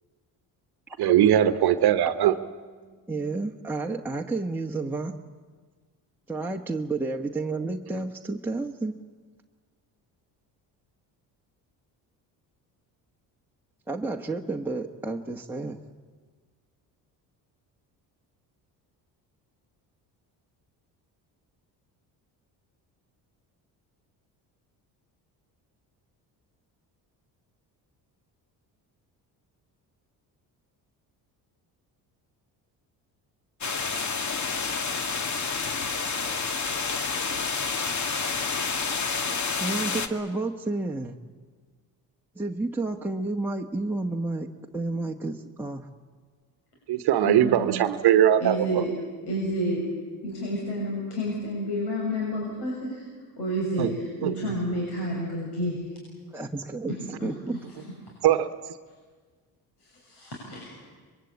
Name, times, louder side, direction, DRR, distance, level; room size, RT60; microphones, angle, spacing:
voice 1, 1.0-2.3 46.9-48.8 53.8-53.9 54.2-54.3 58.2-58.5, right 11 dB, 65° right, 11 dB, 1.1 m, -20 dB
voice 2, 2.0-2.5 2.9-5.1 6.3-9.0 13.9-15.8 39.6-41.1 42.3-44.5 44.7-45.9 56.3-56.9 57.2-57.6, right 3 dB, 5° right, 0 dB, 1.3 m, -31 dB
sound 1, 33.6-40.1, left 5 dB, 45° left, 1.9 m, -29 dB
voice 3, 47.2-47.9 48.4-48.9 49.3-49.9 50.2-53.1 53.4-56.0 56.9-57.9 59.8-60.9, equal, 70° left, -3 dB, 7.0 m, -30 dB
23.0 x 22.5 x 8.6 m, 1.5 s
cardioid pair, 85°, 42 cm